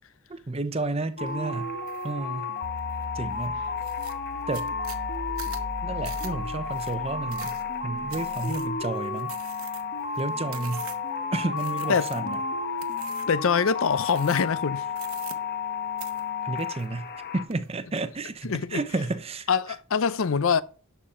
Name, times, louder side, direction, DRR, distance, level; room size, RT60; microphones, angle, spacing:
voice 1, 0.3-1.7 2.0-2.5 3.1-3.6 4.5-4.7 5.8-7.6 7.8-9.4 10.2-10.9 11.3-12.4 16.4-17.1 17.3-19.5, right 2 dB, 25° right, 0.7 m, -31 dB
sound 1, 1.2-17.4, left 5 dB, 45° left, 1.1 m, -32 dB
sound 2, 1.9-2.1 2.6-3.1 3.4-3.5 3.8-11.2 11.6-12.4 12.8-13.4 14.0-14.6 14.9-15.7 16.0-17.2 17.5-18.0, right 11 dB, 75° right, 1.1 m, -45 dB
sound 3, 2.6-8.9, left 1 dB, 30° left, 0.9 m, -40 dB
voice 2, 11.9-12.4 13.3-14.8 18.4-18.8 19.5-20.6, left 6 dB, 65° left, 0.6 m, -24 dB
11.0 x 7.0 x 3.7 m
head